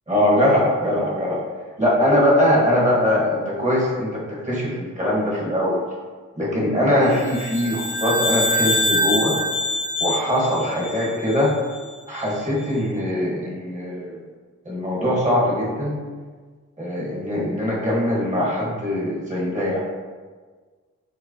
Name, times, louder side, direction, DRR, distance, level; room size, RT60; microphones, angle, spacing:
voice 1, 0.1-1.4 1.8-5.8 6.3-9.3 10.0-11.5 12.1-14.2 14.6-15.9 16.8-19.8, left 1 dB, 20° right, -5 dB, 1.3 m, -21 dB
sound 1, 7.2-11.7, left 1 dB, 35° left, 0.6 m, -25 dB
4.7 x 2.1 x 2.7 m, 1.5 s
cardioid pair, 55°, 32 cm